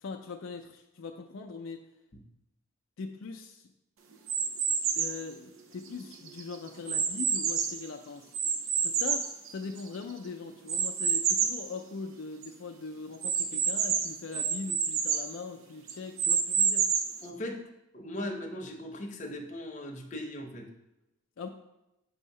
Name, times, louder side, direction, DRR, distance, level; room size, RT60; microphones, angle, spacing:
voice 1, 0.0-1.8 3.0-3.7 4.9-8.2 8.8-16.9 21.4-21.5, left 4 dB, 75° left, 4 dB, 0.4 m, -41 dB
sound 1, 4.3-5.2 5.9-7.9 8.3-10.0 10.7-11.6 12.1-12.2 12.4-12.5 13.2-15.3 15.9-17.2, right 6 dB, 85° right, 0.6 m, -28 dB
voice 2, 17.2-17.6 17.9-20.7, left 1 dB, 40° left, 2 dB, 0.7 m, -38 dB
6.4 x 2.7 x 5.3 m, 0.91 s
head